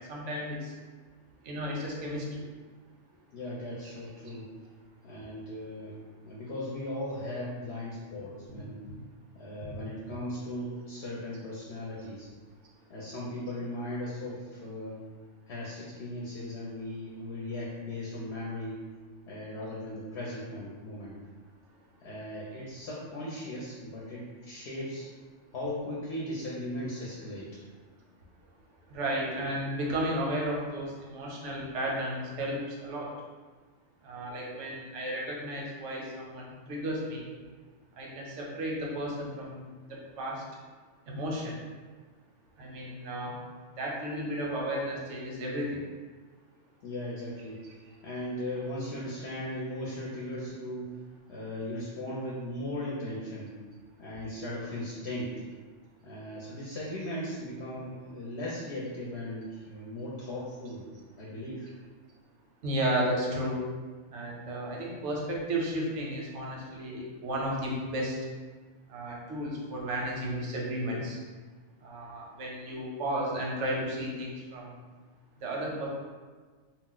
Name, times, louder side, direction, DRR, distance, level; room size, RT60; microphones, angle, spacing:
voice 1, 0.1-0.7 1.4-2.4 8.1-8.6 9.7-9.8 28.9-33.1 34.0-37.3 38.0-39.6 40.2-40.4 41.1-41.5 42.6-43.4 43.8-45.8 62.6-63.6 64.1-68.1 68.9-71.2 71.8-74.7 75.4-75.9, right 1 dB, 90° right, -3 dB, 1.0 m, -33 dB
voice 2, 3.3-4.5 5.0-6.0 6.2-8.8 9.3-12.3 12.9-15.0 15.5-18.8 19.3-21.2 22.0-25.1 25.5-27.6 46.8-47.7 48.0-51.0 51.3-53.5 54.0-55.3 56.0-61.7, left 1 dB, 65° left, -6 dB, 0.8 m, -37 dB
2.4 x 2.0 x 3.7 m, 1.4 s
omnidirectional pair, 1.2 m